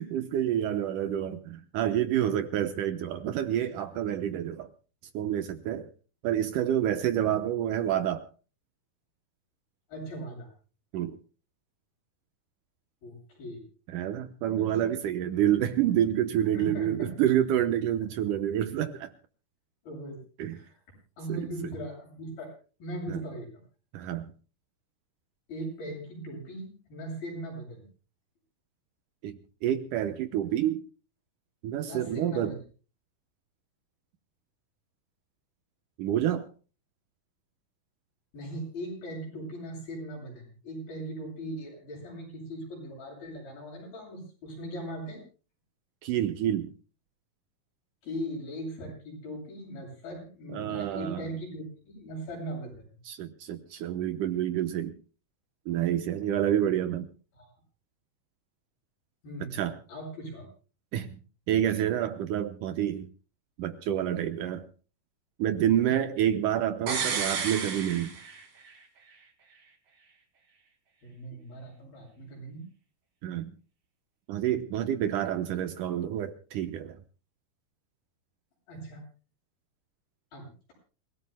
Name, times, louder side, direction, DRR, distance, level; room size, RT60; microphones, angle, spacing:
voice 1, 0.0-4.7 5.1-5.9 6.2-8.3 10.9-11.2 13.9-19.1 20.4-20.6 21.3-21.5 23.1-23.2 23.9-24.3 29.2-30.8 31.6-32.5 36.0-36.5 46.0-46.7 50.5-51.3 53.1-54.9 55.7-57.1 59.4-59.8 60.9-61.1 61.5-63.1 63.6-64.7 65.4-68.1 73.2-73.5 74.3-77.0, right 11 dB, 70° right, 2.2 m, -28 dB
voice 2, 9.9-10.5 13.0-13.7 14.6-14.7 16.5-17.1 19.8-20.2 20.5-20.8 21.2-22.5 22.8-23.6 25.5-27.9 31.8-32.6 38.3-45.2 48.0-52.9 57.3-57.5 59.2-60.5 65.8-66.0 71.0-72.7 78.7-79.0 80.3-80.7, right 1 dB, 75° left, 9.9 m, -39 dB
sound 1, 66.9-68.8 69.1-69.2, right 5 dB, 45° right, 3.0 m, -32 dB
28.0 x 17.5 x 2.2 m
omnidirectional pair, 4.3 m